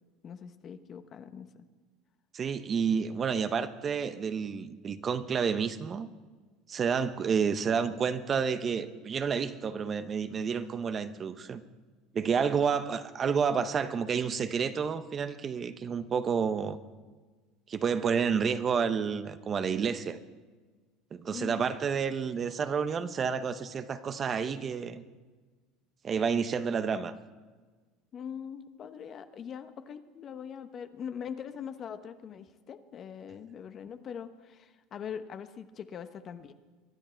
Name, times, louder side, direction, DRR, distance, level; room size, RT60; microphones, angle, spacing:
voice 1, 0.2-1.6 21.3-21.6 28.1-36.5, left 7 dB, 40° left, 10 dB, 1.0 m, -42 dB
voice 2, 2.3-6.1 6.7-11.6 12.1-16.8 17.7-20.2 21.1-25.0 26.0-27.1, right 6 dB, 35° right, 11 dB, 0.8 m, -30 dB
24.0 x 11.0 x 4.5 m, 1.4 s
supercardioid pair, 105°, 0 cm